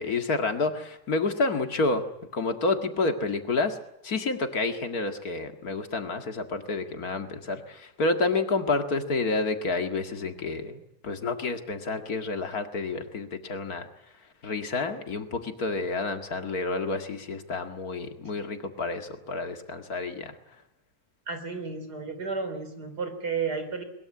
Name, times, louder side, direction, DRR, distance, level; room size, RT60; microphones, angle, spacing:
voice 1, 0.0-2.0 2.3-3.8 4.0-13.9 14.4-20.3, left 3 dB, 65° left, 7 dB, 2.5 m, -29 dB
voice 2, 21.3-23.8, right 5 dB, 90° right, 8 dB, 4.1 m, -32 dB
21.5 x 21.5 x 8.5 m, 0.83 s
omnidirectional pair, 1.7 m